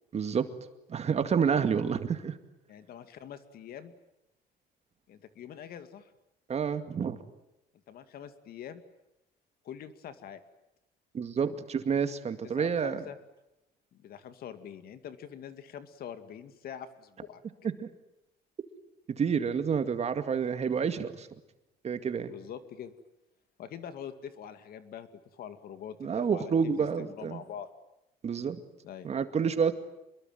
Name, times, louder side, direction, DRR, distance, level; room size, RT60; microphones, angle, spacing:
voice 1, 0.1-0.5 0.9-2.4 6.5-7.2 11.1-13.0 17.8-17.9 19.1-21.3 21.8-22.3 26.0-27.4 28.2-28.6 29.0-29.7, right 6 dB, 40° right, 9 dB, 2.2 m, -29 dB
voice 2, 2.7-3.9 5.1-6.1 7.9-8.8 9.6-10.4 12.6-13.2 13.9-17.4 22.3-22.9 23.6-27.7 28.8-29.1, left 9 dB, 65° left, 10 dB, 2.4 m, -44 dB
26.0 x 22.0 x 9.4 m, 0.87 s
cardioid pair, 110°, 17 cm